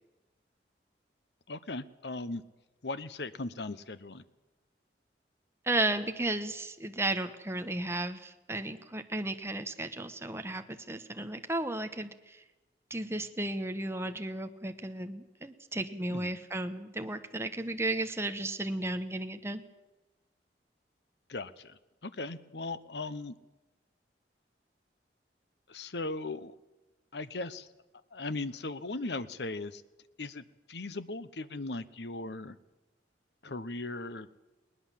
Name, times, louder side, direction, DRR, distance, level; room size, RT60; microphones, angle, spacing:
voice 1, 1.5-2.4 2.8-4.2 16.1-16.3 21.3-23.4 25.7-26.5 27.1-27.7 28.1-29.8 30.2-32.6 33.4-34.3, left 2 dB, 70° left, 15 dB, 1.0 m, -38 dB
voice 2, 5.7-12.4 12.9-19.6, right 2 dB, 15° right, 7 dB, 1.2 m, -34 dB
20.5 x 19.5 x 7.6 m, 1.1 s
head